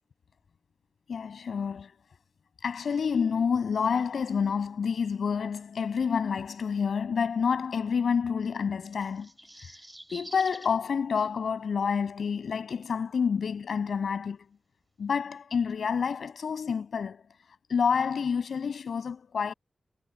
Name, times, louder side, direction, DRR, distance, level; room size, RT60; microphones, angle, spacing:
voice 1, 1.1-1.9 2.6-9.3 10.1-14.4 15.0-17.2 17.7-19.5, left 6 dB, 85° left, 6.2 m, -28 dB
sound 1, 8.9-10.7 12.2-12.3, right 1 dB, 10° right, 4.7 m, -47 dB
wide cardioid pair, 150°, 0 cm